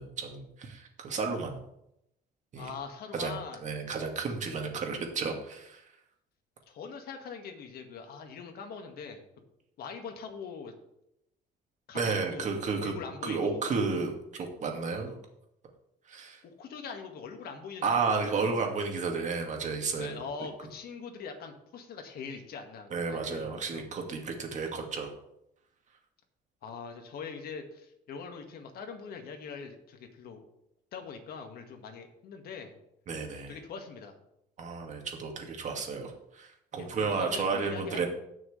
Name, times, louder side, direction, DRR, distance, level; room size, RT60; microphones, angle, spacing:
voice 1, 0.0-1.6 2.5-2.7 3.1-5.8 11.9-12.9 13.2-15.2 16.1-16.4 17.8-20.2 22.9-25.1 33.1-33.5 34.6-38.1, right 4 dB, 45° right, 2 dB, 2.2 m, -32 dB
voice 2, 2.6-3.6 6.7-9.2 9.8-10.7 11.9-12.5 12.8-13.6 16.4-17.9 18.2-18.5 20.0-23.9 26.6-30.4 30.9-32.7 33.5-34.1 36.8-38.1, left 5 dB, 65° left, 4 dB, 1.9 m, -42 dB
17.0 x 6.3 x 3.4 m, 0.80 s
cardioid pair, 110°, 17 cm